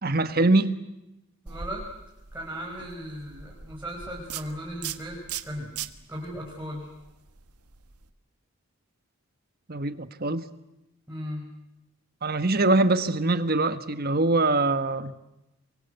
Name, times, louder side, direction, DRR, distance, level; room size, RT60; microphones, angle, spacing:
voice 1, 0.0-0.7 9.7-10.4 12.2-15.1, right 2 dB, 45° right, 1.3 m, -23 dB
voice 2, 1.4-1.9 2.3-5.7 6.1-6.9 11.1-11.5, equal, 10° right, 5.3 m, -37 dB
sound 1, 1.5-8.1, right 8 dB, 90° right, 1.5 m, -41 dB
28.0 x 24.0 x 8.1 m
head